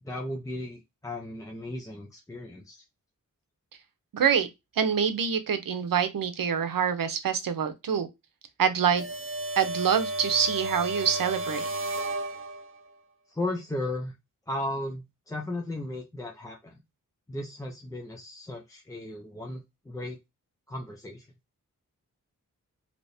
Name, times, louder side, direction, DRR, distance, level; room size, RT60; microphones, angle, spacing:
voice 1, 0.0-2.8 13.3-14.1 14.5-16.7 17.3-20.2 20.7-21.3, left 1 dB, 10° left, 0.6 m, -35 dB
voice 2, 4.1-4.5 4.8-8.1 8.6-9.0 9.6-11.7, right 7 dB, 80° right, 0.7 m, -25 dB
sound 1, 9.0-12.9, right 1 dB, 40° right, 0.6 m, -33 dB
3.3 x 2.9 x 2.6 m
wide cardioid pair, 120°, 33 cm